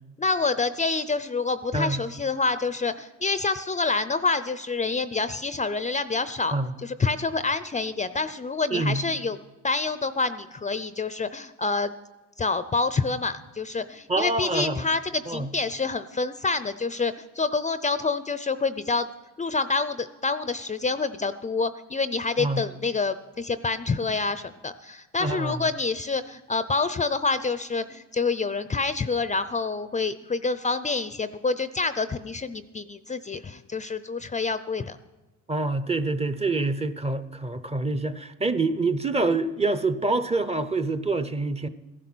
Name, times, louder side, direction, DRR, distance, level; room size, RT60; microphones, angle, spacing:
voice 1, 0.2-6.5 6.8-9.4 9.6-11.9 12.4-19.1 19.4-35.0, left 4 dB, 25° left, 0.5 m, -27 dB
voice 2, 8.7-9.0 14.1-14.9 15.3-15.5 22.4-22.6 25.2-25.6 35.5-41.7, right 2 dB, 20° right, 0.8 m, -26 dB
15.5 x 11.0 x 6.2 m
cardioid pair, 90°, 30 cm